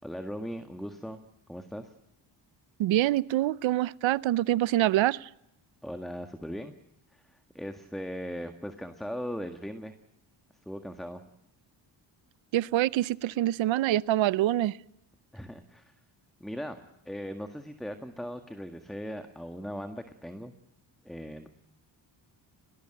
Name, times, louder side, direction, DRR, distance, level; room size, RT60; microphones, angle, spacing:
voice 1, 0.0-1.2 1.5-1.9 5.8-6.7 7.1-10.0 10.7-11.2 15.3-15.9 16.4-16.8 17.1-20.5 21.0-21.5, equal, ahead, 1.7 m, -39 dB
voice 2, 2.8-5.3 12.5-14.8, right 14 dB, 75° right, 0.8 m, -25 dB
20.5 x 20.0 x 9.0 m
cardioid pair, 75°, 46 cm